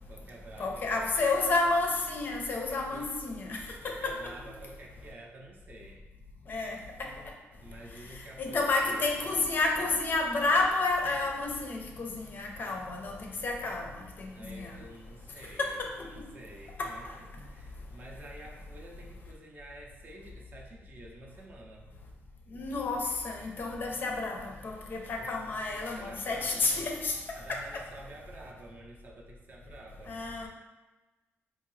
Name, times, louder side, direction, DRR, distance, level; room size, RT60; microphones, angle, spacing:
voice 1, 0.1-1.4 2.7-3.1 3.8-6.1 7.6-9.3 13.6-13.8 14.3-21.9 25.2-26.9 27.3-30.2, right 2 dB, 40° right, -1 dB, 0.5 m, -50 dB
voice 2, 0.6-4.3 6.5-7.1 8.4-13.9 14.2-14.8 15.6-15.9 16.8-16.9 22.5-27.2 27.5-27.6 30.1-30.5, left 3 dB, 45° left, 1 dB, 0.5 m, -30 dB
3.7 x 2.6 x 3.1 m, 1.2 s
wide cardioid pair, 150°, 5 cm